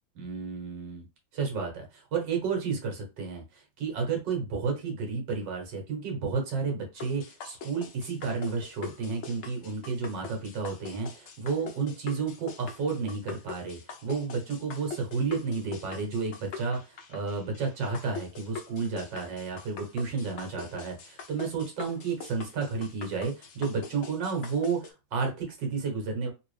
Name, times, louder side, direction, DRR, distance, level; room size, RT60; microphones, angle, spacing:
voice 1, 0.1-1.0 1.3-26.3, right 5 dB, 65° right, 2 dB, 1.8 m, -32 dB
sound 1, 7.0-24.9, left 4 dB, 85° left, 0.6 m, -43 dB
3.8 x 2.8 x 3.2 m, 0.27 s
omnidirectional pair, 2.1 m